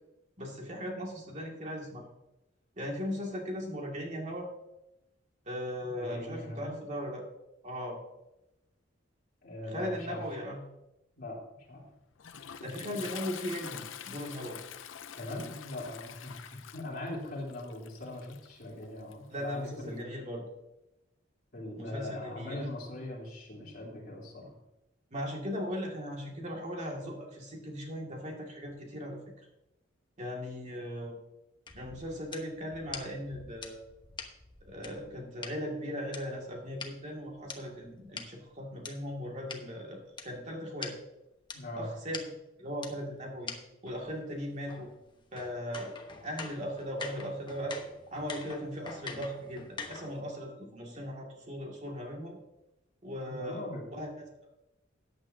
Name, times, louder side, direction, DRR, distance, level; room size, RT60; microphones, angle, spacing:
voice 1, 0.4-2.0 2.8-4.5 5.5-7.2 7.6-8.0 9.7-10.6 12.6-14.6 19.3-20.4 21.8-22.6 25.1-29.2 30.2-31.2 31.7-33.8 34.7-40.9 41.8-42.2 42.6-43.5 43.8-44.9 45.3-46.0 46.2-47.8 48.1-52.4 53.0-54.3, equal, 40° right, 0 dB, 2.3 m, -38 dB
voice 2, 6.0-6.8 9.4-10.2 11.2-11.4 11.7-11.9 12.6-13.0 15.2-20.1 21.5-24.5 41.5-41.9 53.3-53.9, left 1 dB, 50° left, -4 dB, 3.5 m, -41 dB
Toilet flush, 11.7-20.0, left 9 dB, 75° left, 0.6 m, -47 dB
sound 1, 31.7-35.5 36.1-38.9 39.5-39.6 40.2-40.3 40.5-40.6 40.8-41.0 41.5-41.6 42.1-42.2 42.8-42.9 43.5-43.6 43.9-50.2, left 4 dB, 25° left, 1.1 m, -44 dB
14.0 x 9.5 x 2.8 m, 0.91 s
head